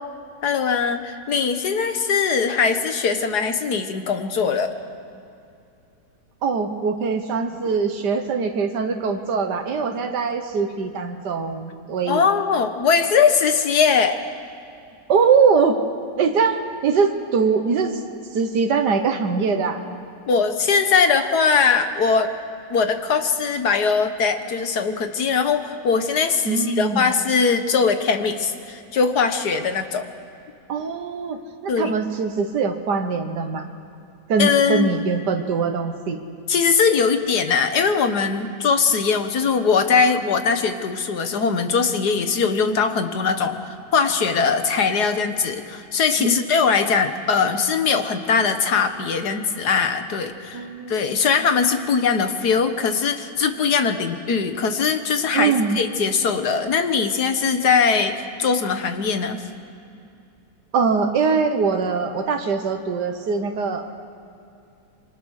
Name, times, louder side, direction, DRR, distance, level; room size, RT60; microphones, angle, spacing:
voice 1, 0.4-4.8 12.1-14.2 20.3-22.3 22.7-30.1 31.7-31.9 34.4-35.0 36.5-59.4, left 5 dB, 75° left, 8 dB, 1.9 m, -21 dB
voice 2, 6.4-12.3 15.1-15.8 16.2-17.9 18.3-19.8 26.5-27.1 30.7-33.6 34.3-36.2 46.2-46.5 50.5-51.0 55.3-55.8 60.7-63.9, right 5 dB, 90° right, 5 dB, 1.8 m, -22 dB
27.0 x 24.0 x 6.5 m, 2.6 s
omnidirectional pair, 1.7 m